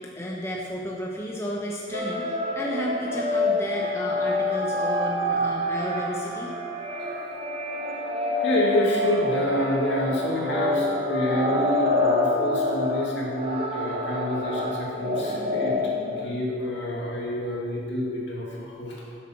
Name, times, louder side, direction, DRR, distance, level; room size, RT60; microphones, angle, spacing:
voice 1, 0.0-6.5, equal, 15° left, -3 dB, 0.9 m, -32 dB
sound 1, 1.9-16.3, left 2 dB, 30° right, 1.0 m, -27 dB
voice 2, 8.4-15.7 16.0-19.2, equal, 60° left, -4 dB, 2.4 m, -28 dB
11.0 x 7.5 x 6.1 m, 2.3 s
head